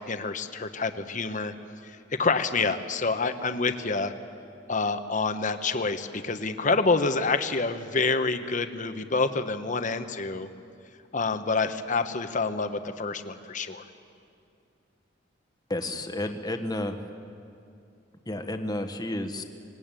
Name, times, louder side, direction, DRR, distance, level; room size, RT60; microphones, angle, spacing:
voice 1, 0.0-1.5 1.8-4.1 4.7-10.5 11.1-13.8, left 3 dB, 40° left, 9 dB, 1.1 m, -27 dB
voice 2, 15.7-16.9 18.3-19.4, left 1 dB, 20° left, 6 dB, 1.3 m, -31 dB
25.0 x 20.0 x 9.1 m, 2.5 s
head